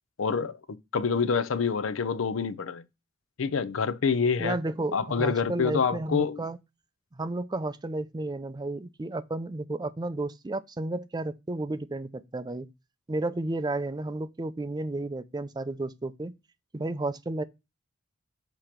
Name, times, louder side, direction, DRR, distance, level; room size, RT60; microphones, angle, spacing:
voice 1, 0.2-0.6 0.9-2.8 3.4-4.6 4.9-6.4, left 5 dB, 75° left, 0.5 m, -26 dB
voice 2, 4.4-6.6 7.1-12.7 13.1-16.3 16.7-17.4, right 2 dB, 20° right, 0.4 m, -32 dB
6.7 x 3.0 x 5.7 m
head